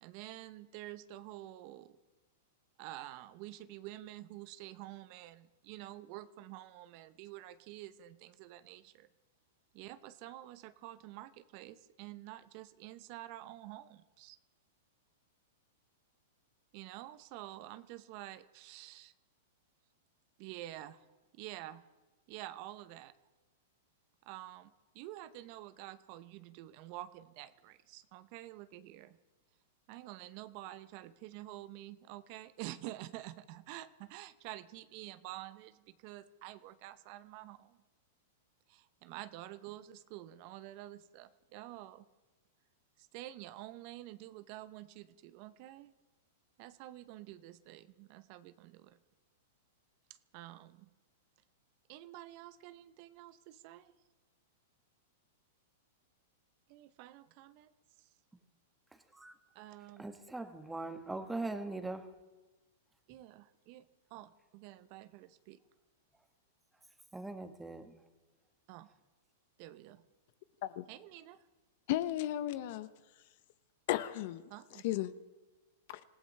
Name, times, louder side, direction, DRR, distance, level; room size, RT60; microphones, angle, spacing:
voice 1, 0.0-2.0 2.8-9.1 9.7-14.4 16.7-19.1 20.4-21.0 21.3-21.8 22.3-23.1 24.3-29.2 29.9-37.8 38.7-42.0 43.0-45.9 46.6-49.0 50.1-50.9 51.9-53.9 56.7-57.7 58.0-58.1 59.5-60.0 63.1-65.6 68.7-69.0 69.6-70.0 70.9-71.4 74.5-74.9, right 15 dB, 50° right, 13 dB, 0.7 m, -49 dB
voice 2, 58.9-59.3 60.0-62.1 67.1-67.9, right 2 dB, 5° right, 7 dB, 1.3 m, -41 dB
voice 3, 71.9-72.9 73.9-74.4 74.7-75.1 75.9-76.0, left 14 dB, 55° left, 15 dB, 0.7 m, -34 dB
26.0 x 16.0 x 3.3 m, 1.2 s
hypercardioid pair, 120°, 0 cm